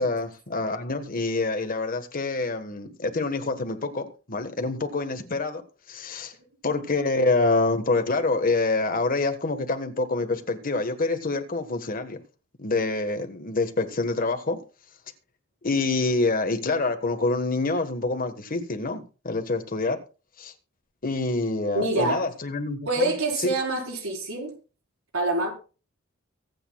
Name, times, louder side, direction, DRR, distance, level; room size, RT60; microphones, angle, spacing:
voice 1, 0.0-5.6 5.9-6.3 6.6-12.2 12.6-14.6 15.6-20.0 20.4-20.5 21.0-23.1 23.4-23.5, left 3 dB, 45° left, 1.4 m, -26 dB
voice 2, 21.7-22.2 22.8-24.5 25.1-25.5, right 2 dB, 85° right, 4.6 m, -26 dB
24.0 x 8.4 x 2.3 m
head